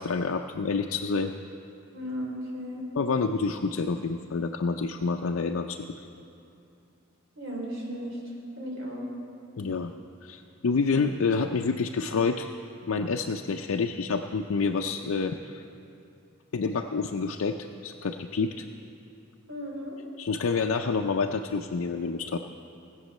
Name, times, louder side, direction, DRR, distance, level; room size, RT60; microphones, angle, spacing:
voice 1, 0.0-1.3 2.9-5.9 9.6-9.9 10.2-12.5 12.8-15.6 16.5-17.6 17.8-18.7 20.2-22.4, left 4 dB, 75° left, 3 dB, 0.5 m, -28 dB
voice 2, 1.9-2.8 7.4-8.2 8.6-9.1 19.5-20.0, equal, 65° right, -3 dB, 3.6 m, -35 dB
17.5 x 8.4 x 6.5 m, 2.6 s
head